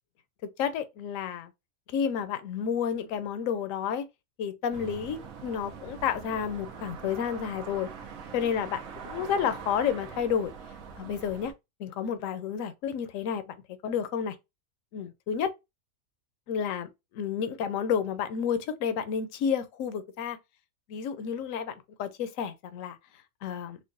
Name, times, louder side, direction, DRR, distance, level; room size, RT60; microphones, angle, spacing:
voice 1, 0.4-1.5 1.9-4.0 4.4-7.9 8.3-10.5 11.0-11.5 11.8-14.4 14.9-15.5 16.5-16.9 17.1-20.4 20.9-23.0 23.4-23.8, left 7 dB, 70° left, 1.0 m, -31 dB
sound 1, 4.7-11.5, right 6 dB, 70° right, 1.1 m, -43 dB
4.5 x 2.2 x 2.6 m
omnidirectional pair, 1.5 m